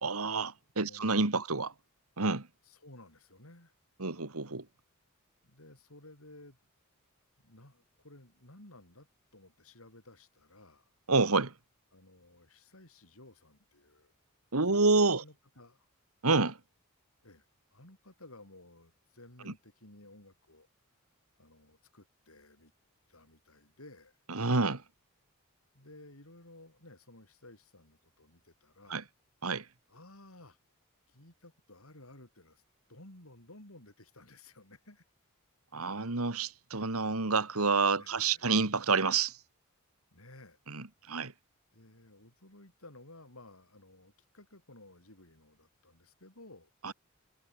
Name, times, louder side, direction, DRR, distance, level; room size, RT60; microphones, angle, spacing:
voice 1, 0.0-1.7 2.2-2.5 4.0-4.6 11.1-11.5 14.5-15.2 16.2-16.6 19.5-19.6 24.3-24.8 28.9-29.0 29.4-29.6 35.7-39.4 40.7-41.3 46.8-46.9, right 4 dB, 85° right, 2.1 m, -28 dB
voice 2, 0.8-1.6 2.6-3.7 5.4-6.6 7.4-9.1 9.3-10.9 11.9-14.1 14.7-14.8 15.2-15.9 17.2-17.4 17.7-20.7 21.4-22.7 23.1-24.1 25.7-29.1 29.9-30.6 31.1-32.6 32.9-35.0 38.0-38.5 40.1-40.6 41.7-46.7, left 2 dB, 75° left, 7.7 m, -55 dB
head